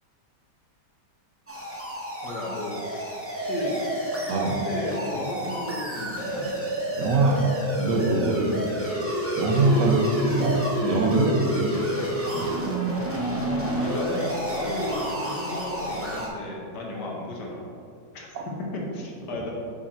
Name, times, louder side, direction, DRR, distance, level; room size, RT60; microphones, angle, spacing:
sound 1, 1.5-16.3, right 1 dB, 20° right, 0.3 m, -29 dB
voice 1, 2.2-3.9 4.2-6.5 8.3-8.6 9.7-9.9 12.9-17.7 18.1-19.5, left 2 dB, 75° left, -2 dB, 1.7 m, -34 dB
voice 2, 7.0-7.5 7.8-8.6 9.4-11.8 12.3-12.5 18.3-18.4, right 2 dB, 80° right, 1 dB, 1.4 m, -23 dB
6.2 x 4.3 x 4.2 m, 2.4 s
omnidirectional pair, 1.8 m